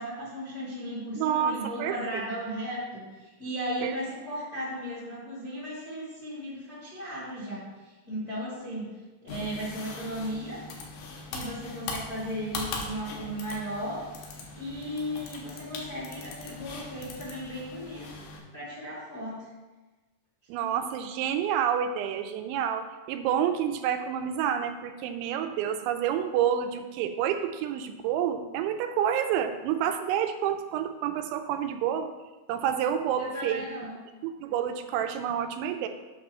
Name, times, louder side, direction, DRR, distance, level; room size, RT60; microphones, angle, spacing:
voice 1, 0.0-8.9 9.2-10.6 11.3-14.0 14.5-19.5 33.2-33.9, equal, 90° left, -8 dB, 0.8 m, -36 dB
voice 2, 1.2-2.0 3.8-3.9 20.5-32.1 32.5-33.6 34.2-35.9, right 9 dB, 85° right, 7 dB, 2.9 m, -28 dB
sound 1, 9.3-18.4, left 3 dB, 75° left, 2.8 m, -40 dB
8.4 x 3.2 x 6.0 m, 1.2 s
omnidirectional pair, 5.3 m